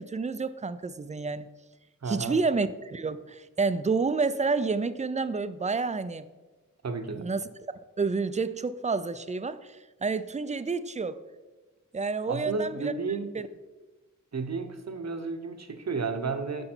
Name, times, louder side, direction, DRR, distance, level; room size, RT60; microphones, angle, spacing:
voice 1, 0.0-1.5 2.1-6.2 7.2-7.4 8.0-11.2 11.9-12.9 13.3-13.5, right 4 dB, 20° right, 13 dB, 0.4 m, -29 dB
voice 2, 2.0-2.4 6.8-7.3 12.3-13.3 14.3-16.7, right 4 dB, 55° right, 7 dB, 0.9 m, -32 dB
7.8 x 5.5 x 4.4 m, 1.2 s
cardioid pair, 50°, 32 cm